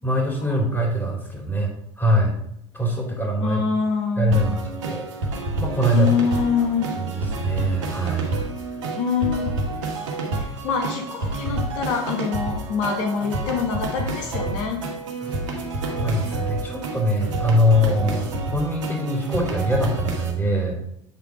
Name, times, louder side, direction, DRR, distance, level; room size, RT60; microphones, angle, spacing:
voice 1, 0.0-1.7 2.0-2.3 2.7-3.6 4.2-5.0 5.6-6.1 6.6-6.7 7.0-8.3 15.9-20.8, equal, 15° left, 0 dB, 2.7 m, -23 dB
voice 2, 3.4-4.5 5.9-6.9 9.0-9.6 10.4-14.8, left 5 dB, 75° left, 4 dB, 1.2 m, -25 dB
sound 1, 4.3-20.3, right 2 dB, 80° right, 1.6 m, -29 dB
9.0 x 3.6 x 4.9 m, 0.75 s
hypercardioid pair, 80°, 16 cm